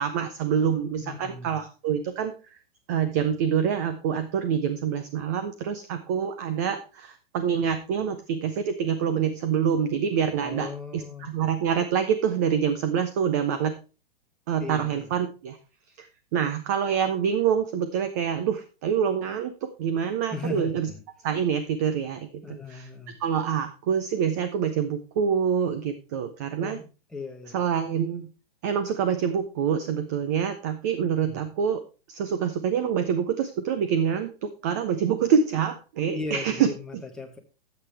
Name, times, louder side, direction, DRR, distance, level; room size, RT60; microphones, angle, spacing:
voice 1, 0.0-2.3 2.9-13.7 14.5-15.6 16.0-20.9 21.2-22.9 23.2-26.8 27.5-28.3 28.6-31.8 32.1-36.7, right 7 dB, 20° right, 10 dB, 0.4 m, -26 dB
voice 2, 1.0-1.6 10.4-11.3 14.6-15.1 20.3-21.0 22.4-23.2 26.6-26.8 27.1-27.6 31.2-31.4 36.1-37.4, left 3 dB, ahead, 1 dB, 1.1 m, -37 dB
12.0 x 7.9 x 3.3 m, 0.32 s
hypercardioid pair, 165°, 30 cm